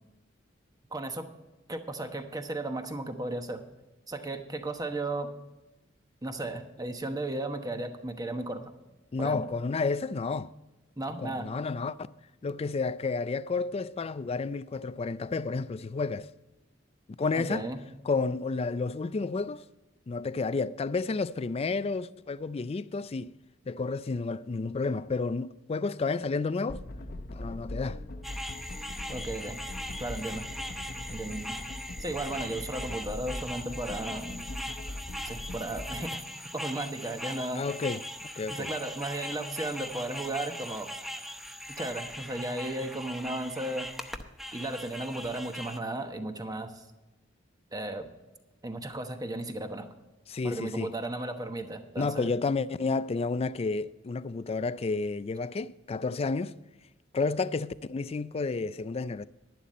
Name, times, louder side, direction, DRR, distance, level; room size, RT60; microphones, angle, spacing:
voice 1, 0.9-1.3 1.7-3.6 4.1-5.3 6.2-8.6 9.2-9.5 11.0-11.5 17.4-17.8 29.1-29.6 30.0-30.4 31.1-31.6 32.0-34.4 35.2-36.2 36.5-37.7 38.5-40.9 41.7-43.9 44.5-46.8 47.7-48.1 48.6-49.9 50.4-52.3, right 2 dB, 20° right, 1.1 m, -35 dB
voice 2, 9.1-10.5 11.2-12.0 12.4-16.3 17.2-17.7 18.0-19.6 20.1-23.4 23.7-26.8 27.3-28.0 37.6-38.0 38.4-38.7 50.3-50.9 52.0-56.5 57.1-59.2, left 4 dB, 30° left, 0.4 m, -31 dB
sound 1, 26.7-36.1, left 1 dB, 50° left, 0.8 m, -41 dB
sound 2, 28.2-45.8, equal, ahead, 0.7 m, -40 dB
11.0 x 11.0 x 4.2 m
head